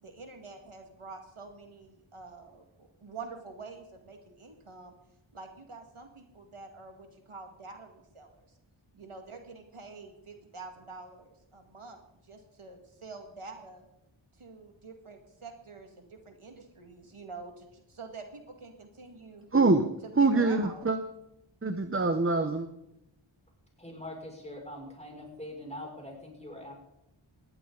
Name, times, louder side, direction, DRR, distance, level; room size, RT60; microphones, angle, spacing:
voice 1, 0.0-4.9 5.3-8.5 8.9-12.0 12.2-13.8 14.4-19.5 20.2-20.9, right 4 dB, 85° right, 4 dB, 2.2 m, -47 dB
voice 2, 19.5-19.8 20.2-21.0 21.6-22.7, right 3 dB, 25° right, 9 dB, 0.9 m, -24 dB
voice 3, 23.8-26.7, left 1 dB, 15° left, -1 dB, 6.4 m, -43 dB
19.5 x 15.5 x 4.0 m, 0.84 s
wide cardioid pair, 45°, 49 cm